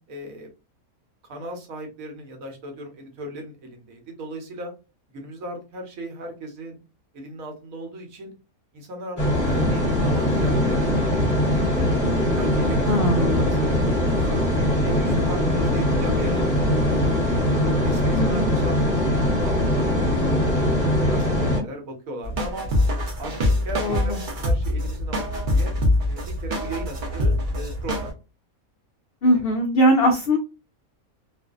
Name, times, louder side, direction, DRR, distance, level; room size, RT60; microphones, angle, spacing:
voice 1, 0.1-0.5 1.3-4.7 5.1-6.8 7.1-8.3 8.7-11.8 12.2-14.5 14.8-17.2 17.8-20.7 21.1-22.7 23.2-23.3 23.6-25.7 26.1-28.1 29.2-29.5, right 1 dB, 70° right, 3 dB, 1.2 m, -37 dB
sound 1, 9.2-21.6, left 1 dB, 15° left, 0.9 m, -21 dB
voice 2, 12.9-13.6 18.1-18.5 23.8-24.2 29.2-30.4, equal, 80° left, 2 dB, 0.5 m, -21 dB
sound 2, 22.2-28.1, left 1 dB, 45° right, 0.7 m, -24 dB
2.5 x 2.5 x 2.3 m, 0.31 s
omnidirectional pair, 1.5 m